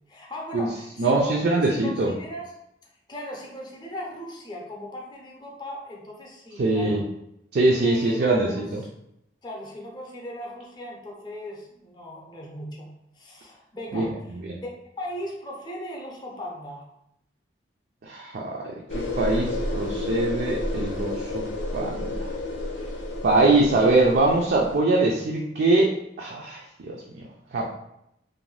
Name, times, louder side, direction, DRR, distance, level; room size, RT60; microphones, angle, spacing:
voice 1, 0.1-2.5 3.1-7.0 7.8-8.7 9.4-14.7 15.0-16.8, left 1 dB, 25° left, -1 dB, 0.6 m, -38 dB
voice 2, 1.0-2.1 6.6-7.0 7.5-8.8 13.9-14.1 14.4-14.6 18.0-21.5 21.7-22.3 23.2-27.2 27.5-27.7, right 2 dB, 55° right, -2 dB, 0.4 m, -23 dB
sound 1, 18.9-24.8, left 2 dB, 75° left, 0.6 m, -31 dB
2.6 x 2.2 x 3.1 m, 0.81 s
head